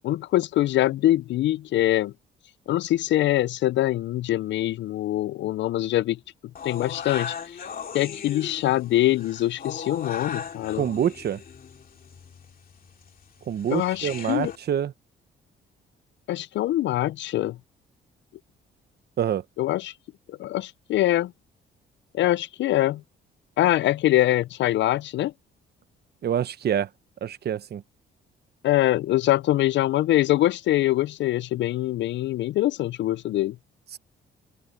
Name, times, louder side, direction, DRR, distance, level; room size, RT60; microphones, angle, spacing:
voice 1, 0.0-2.1 2.7-6.2 6.6-7.6 7.9-10.8 13.7-14.5 16.3-17.6 19.6-19.9 20.3-21.3 22.1-23.0 23.6-25.3 28.6-33.6, left 14 dB, 65° left, 0.4 m, -23 dB
sound 1, 6.6-14.6, left 6 dB, 45° left, 2.7 m, -38 dB
voice 2, 10.8-11.4 13.5-14.9 19.2-19.4 26.2-26.9 27.2-27.8, right 9 dB, 55° right, 1.0 m, -26 dB
open air
cardioid pair, 90°, 20 cm